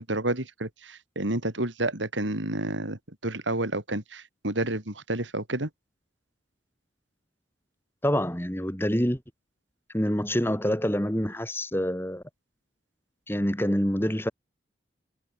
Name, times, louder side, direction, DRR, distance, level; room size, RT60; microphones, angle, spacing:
voice 1, 0.0-5.7, right 2 dB, 90° right, 4.0 m, -30 dB
voice 2, 8.0-9.2 9.9-12.2 13.3-14.3, equal, 15° left, 3.4 m, -26 dB
head